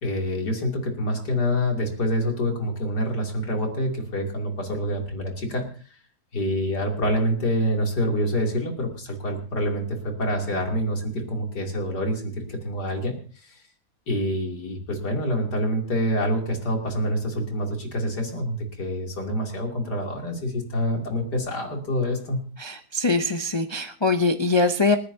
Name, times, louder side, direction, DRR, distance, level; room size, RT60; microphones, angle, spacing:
voice 1, 0.0-5.7 6.3-13.1 13.4-13.6 14.1-22.4, equal, 85° left, 1 dB, 3.4 m, -26 dB
voice 2, 22.6-25.0, left 3 dB, 40° left, 6 dB, 0.4 m, -22 dB
28.5 x 10.0 x 2.7 m, 0.40 s
omnidirectional pair, 1.7 m